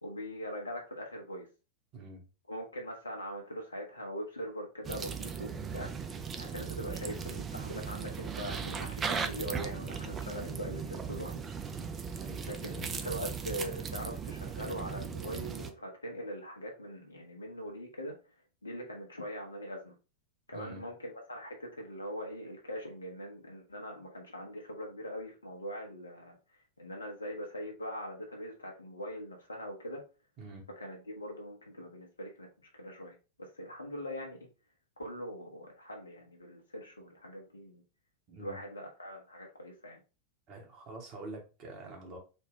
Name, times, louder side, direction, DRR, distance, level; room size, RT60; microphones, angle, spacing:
voice 1, 0.0-1.5 2.5-11.4 12.5-18.1 18.6-20.0 20.5-26.4 26.8-30.0 30.8-34.5 35.0-37.8 38.4-40.0, equal, 80° left, 1 dB, 1.1 m, -42 dB
voice 2, 1.9-2.2 12.1-12.9 20.5-20.8 30.4-30.7 38.3-38.6 40.5-42.2, right 2 dB, 40° right, 1 dB, 1.3 m, -46 dB
sound 1, 4.8-15.7, right 6 dB, 20° right, 0.4 m, -38 dB
4.1 x 2.3 x 3.5 m, 0.32 s
figure-of-eight pair, 90°, 0 cm